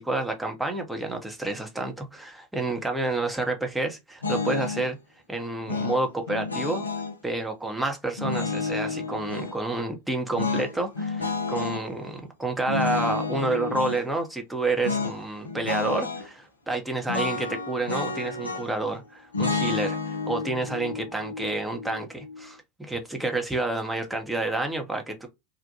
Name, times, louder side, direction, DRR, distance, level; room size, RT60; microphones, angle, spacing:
voice 1, 0.0-5.0 5.3-6.9 7.2-20.0 20.3-25.3, right 2 dB, 5° right, 0.7 m, -29 dB
sound 1, 4.2-4.9 5.7-7.2 8.2-9.6 10.3-11.8 12.7-14.0 14.8-15.2 15.4-16.3 17.1-18.8 19.3-22.4, left 4 dB, 85° left, 0.5 m, -30 dB
2.4 x 2.1 x 2.7 m
figure-of-eight pair, 85°, 0 cm